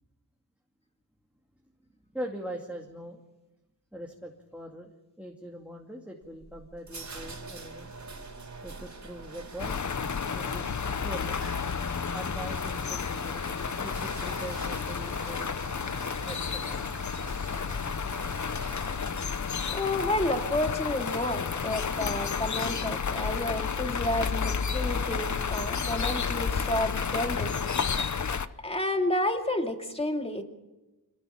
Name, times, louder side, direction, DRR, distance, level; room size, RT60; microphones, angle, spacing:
voice 1, 2.1-3.2 3.9-7.9 8.6-9.8 10.2-11.5 12.1-15.5 16.3-17.0, right 1 dB, 5° right, 0 dB, 2.4 m, -42 dB
sound 1, 6.2-19.8, right 3 dB, 40° right, 3.8 m, -44 dB
sound 2, 9.6-28.5, left 6 dB, 45° left, 0.9 m, -31 dB
voice 2, 19.5-27.6 28.6-30.4, left 1 dB, 15° left, 4 dB, 2.6 m, -30 dB
27.0 x 19.5 x 5.9 m, 1.1 s
wide cardioid pair, 100°, 42 cm